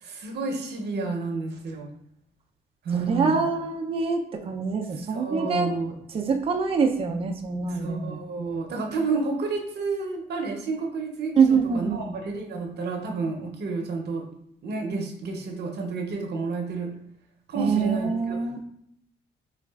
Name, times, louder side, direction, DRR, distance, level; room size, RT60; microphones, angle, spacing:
voice 1, 0.0-1.9 2.8-3.5 5.1-6.0 7.7-14.3 14.6-16.9 17.5-18.4, right 4 dB, 55° right, 1 dB, 0.7 m, -30 dB
voice 2, 2.9-5.7 6.1-8.2 11.4-12.0 17.6-18.6, right 5 dB, 30° right, 3 dB, 0.4 m, -25 dB
4.0 x 2.4 x 2.3 m, 0.72 s
cardioid pair, 90°, 20 cm